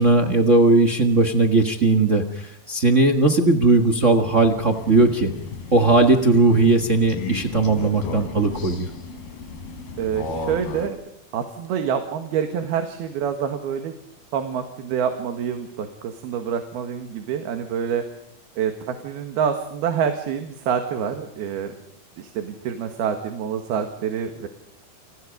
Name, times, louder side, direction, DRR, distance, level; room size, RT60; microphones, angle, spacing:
voice 1, 0.0-5.3 5.7-8.9, right 3 dB, 60° right, 6 dB, 0.7 m, -18 dB
Crow, 4.2-10.9, left 4 dB, 85° left, 4.6 m, -35 dB
voice 2, 10.0-11.0 11.3-13.9 14.3-18.0 18.6-21.7 22.2-24.5, right 7 dB, 90° right, 6 dB, 3.7 m, -27 dB
29.5 x 27.5 x 5.2 m, 0.71 s
omnidirectional pair, 4.3 m